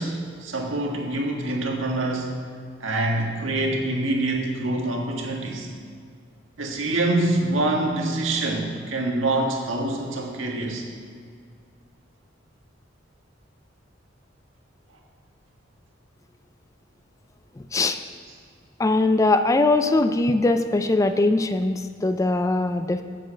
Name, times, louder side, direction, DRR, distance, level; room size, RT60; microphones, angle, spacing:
voice 1, 0.0-2.4 2.8-5.7 6.6-10.8, right 2 dB, 80° right, 0 dB, 1.6 m, -25 dB
voice 2, 17.6-18.0 18.8-23.0, left 2 dB, 15° left, 9 dB, 0.3 m, -21 dB
7.7 x 7.6 x 7.5 m, 2.2 s
head